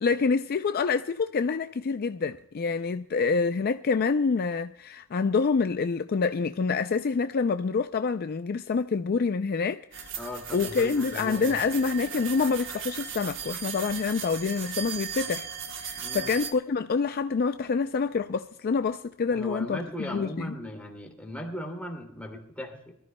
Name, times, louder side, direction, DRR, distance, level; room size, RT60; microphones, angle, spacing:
voice 1, 0.0-10.1 10.5-15.5 15.8-20.5, left 5 dB, 45° left, 0.4 m, -27 dB
sound 1, 9.9-16.5, right 8 dB, 60° right, 1.1 m, -37 dB
voice 2, 10.2-11.6 15.9-16.3 19.3-22.9, equal, 5° left, 2.6 m, -38 dB
24.5 x 13.5 x 2.2 m
head